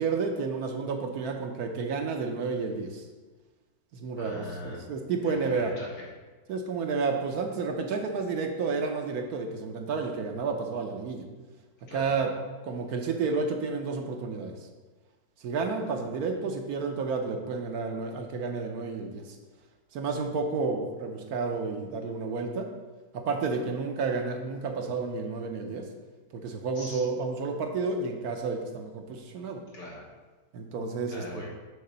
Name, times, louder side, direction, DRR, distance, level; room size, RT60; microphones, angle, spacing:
voice 1, 0.0-3.1 3.9-5.7 6.5-11.2 11.9-12.3 12.6-14.5 15.4-19.4 19.9-22.7 23.1-25.9 26.3-29.6 30.5-31.2, right 4 dB, 70° right, 4 dB, 1.1 m, -31 dB
voice 2, 4.2-4.9 5.2-6.1 11.9-12.2 26.7-27.0 29.7-30.0 31.1-31.5, left 1 dB, 80° left, -4 dB, 2.2 m, -41 dB
6.7 x 3.6 x 5.4 m, 1.3 s
omnidirectional pair, 1.8 m